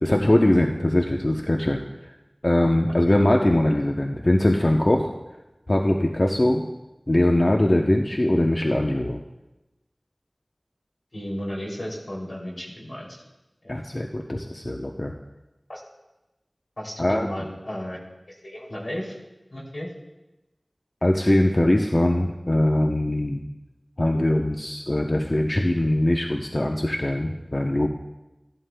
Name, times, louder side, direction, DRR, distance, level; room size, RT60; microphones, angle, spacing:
voice 1, 0.0-2.1 2.4-5.1 5.7-6.6 7.1-9.2 13.7-15.1 17.0-17.3 21.0-23.4 24.0-27.9, left 1 dB, 50° left, 1 dB, 0.7 m, -21 dB
voice 2, 11.1-13.2 13.6-13.7 15.7-15.8 16.8-18.0 18.4-19.2 19.5-19.9, equal, 85° left, -3 dB, 2.8 m, -33 dB
16.0 x 11.0 x 2.2 m, 1.0 s
wide cardioid pair, 40°, 0 cm